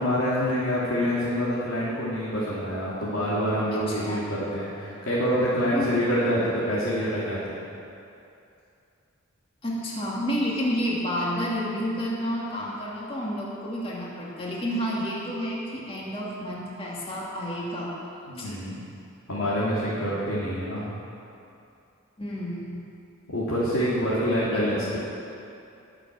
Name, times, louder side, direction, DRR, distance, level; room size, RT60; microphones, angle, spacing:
voice 1, 0.0-7.6 18.3-18.8 19.3-20.9 23.3-25.0, equal, 85° left, -9 dB, 3.2 m, -26 dB
voice 2, 3.7-4.2 5.7-6.4 9.6-18.5 22.2-22.8 24.5-25.0, equal, 25° left, -6 dB, 2.7 m, -30 dB
20.5 x 7.4 x 7.7 m, 2.6 s
head